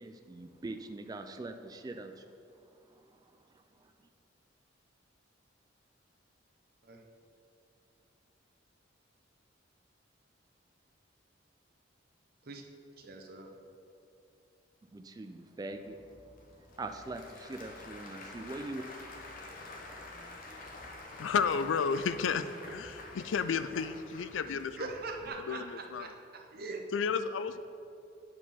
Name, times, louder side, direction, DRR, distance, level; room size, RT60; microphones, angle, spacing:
voice 1, 0.0-2.1 14.9-16.0 16.8-18.8, right 2 dB, 20° right, 6 dB, 0.3 m, -42 dB
voice 2, 12.9-13.5 24.5-26.8, right 3 dB, 55° right, 3 dB, 0.8 m, -42 dB
Applause / Crowd, 15.7-25.3, left 2 dB, 50° left, 0.9 m, -48 dB
voice 3, 21.2-24.9 25.5-26.1 26.9-27.7, left 6 dB, 85° left, 12 dB, 0.4 m, -32 dB
8.0 x 4.8 x 5.6 m, 2.6 s
head